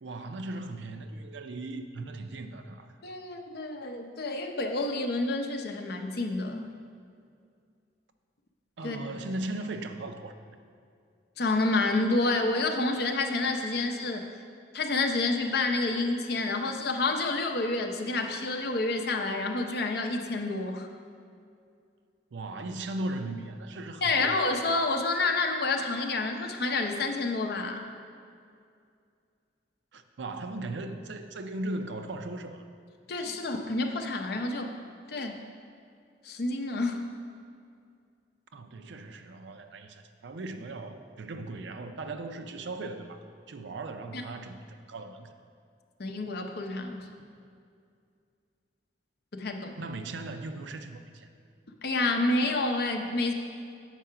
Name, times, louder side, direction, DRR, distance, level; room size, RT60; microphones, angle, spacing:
voice 1, 0.0-2.9 8.8-10.3 22.3-24.4 29.9-32.7 38.5-43.2 43.5-45.3 49.8-51.3, right 2 dB, 70° right, 7 dB, 0.5 m, -38 dB
voice 2, 3.0-6.7 8.8-9.0 11.4-14.2 14.7-20.9 24.0-27.8 33.1-34.7 35.1-35.4 36.2-37.0 44.1-44.2 46.0-47.1 49.3-49.8 51.8-53.3, left 2 dB, 55° left, 4 dB, 0.6 m, -29 dB
7.5 x 4.8 x 5.6 m, 2.3 s
head